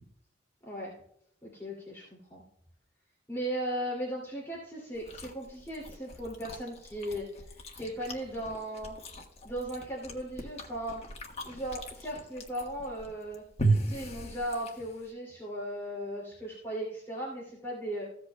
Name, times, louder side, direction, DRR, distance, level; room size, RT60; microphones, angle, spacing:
voice 1, 0.6-0.9 1.4-2.4 3.3-8.9 9.4-11.0 11.4-13.4 13.8-18.1, right 1 dB, 15° left, -5 dB, 2.5 m, -37 dB
Chewing mastication, 4.9-15.1, right 2 dB, 35° left, 1.4 m, -37 dB
15.5 x 8.1 x 2.2 m, 0.72 s
head